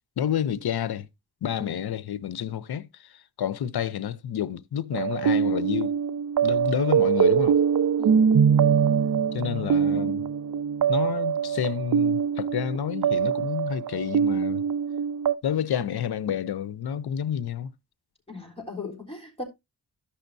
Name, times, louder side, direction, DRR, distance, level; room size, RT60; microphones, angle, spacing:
voice 1, 0.2-1.1 1.4-6.0 6.4-7.6 9.3-10.3 10.9-14.6 15.4-17.7, left 9 dB, 80° left, 0.7 m, -29 dB
sound 1, 4.9-15.3, right 7 dB, 60° right, 0.6 m, -23 dB
voice 2, 18.3-19.4, left 3 dB, 15° left, 3.5 m, -38 dB
14.0 x 5.7 x 2.6 m
wide cardioid pair, 80°, 38 cm